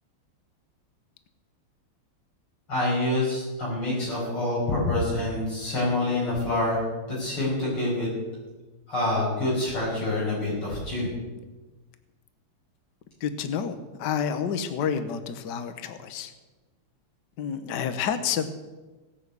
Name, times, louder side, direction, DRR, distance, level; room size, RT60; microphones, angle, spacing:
voice 1, 2.7-6.8 7.1-8.1 8.9-11.1, left 2 dB, 85° left, -6 dB, 6.6 m, -26 dB
voice 2, 13.2-16.3 17.4-18.4, left 7 dB, 60° left, 9 dB, 1.4 m, -29 dB
18.0 x 6.3 x 8.3 m, 1.2 s
omnidirectional pair, 2.4 m